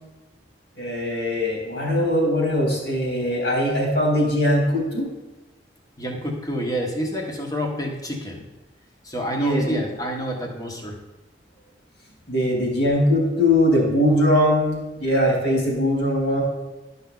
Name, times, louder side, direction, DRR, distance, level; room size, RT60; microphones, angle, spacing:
voice 1, 0.8-5.1 9.4-9.8 12.3-16.4, left 1 dB, 65° left, -2 dB, 3.1 m, -21 dB
voice 2, 6.0-8.5 9.0-11.0, equal, 20° left, 1 dB, 1.4 m, -28 dB
11.5 x 5.8 x 3.9 m, 1.1 s
head